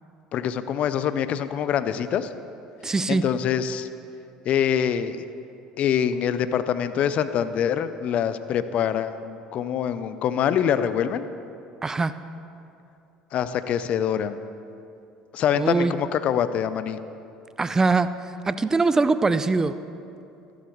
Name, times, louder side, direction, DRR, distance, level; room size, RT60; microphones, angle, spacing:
voice 1, 0.3-2.3 3.1-3.9 4.5-5.2 5.8-11.3 13.3-14.4 15.3-17.0, left 9 dB, 55° left, 12 dB, 0.5 m, -25 dB
voice 2, 2.8-3.2 11.8-12.1 15.5-15.9 17.6-18.1 18.5-19.7, right 3 dB, 20° right, 13 dB, 0.5 m, -22 dB
13.5 x 12.0 x 3.1 m, 2.6 s
hypercardioid pair, 70°, 3 cm